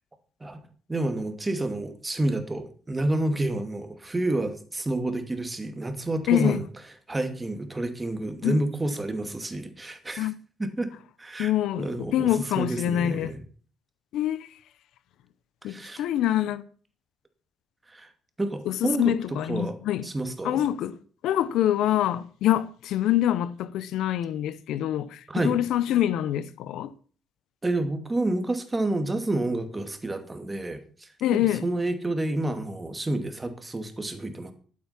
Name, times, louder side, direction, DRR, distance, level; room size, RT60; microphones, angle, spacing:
voice 1, 0.9-6.6 7.1-10.3 10.6-10.9 11.2-11.5 11.8-13.4 15.6-16.0 17.9-18.1 18.4-19.1 19.5-19.8 20.0-20.6 25.3-25.6 27.6-34.5, right 2 dB, 20° right, 2.5 m, -29 dB
voice 2, 6.3-6.6 8.4-8.6 10.2-10.3 11.4-13.3 14.1-14.5 15.6-16.6 18.7-20.1 20.4-20.9 21.2-26.9 31.2-31.6, left 12 dB, 85° left, 0.8 m, -25 dB
12.5 x 8.8 x 5.9 m
cardioid pair, 90°, 0 cm